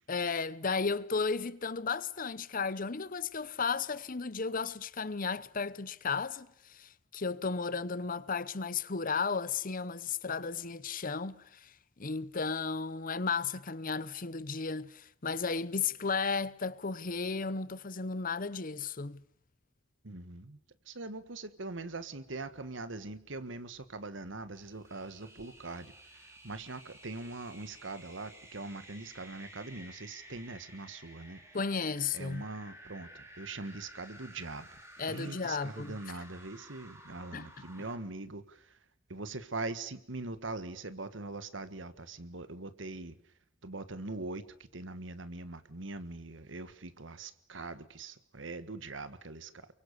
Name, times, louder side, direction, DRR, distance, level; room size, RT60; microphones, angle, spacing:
voice 1, 0.1-11.7 12.0-19.2 31.5-32.4 35.0-35.9 37.3-37.5, left 5 dB, 45° left, 0.9 m, -34 dB
voice 2, 20.0-20.6 20.8-31.4 32.1-34.7 35.1-38.8 39.1-43.3 43.6-49.7, right 3 dB, 70° right, 1.6 m, -42 dB
sound 1, 24.5-38.0, right 1 dB, 15° right, 5.7 m, -54 dB
28.5 x 23.5 x 6.9 m
head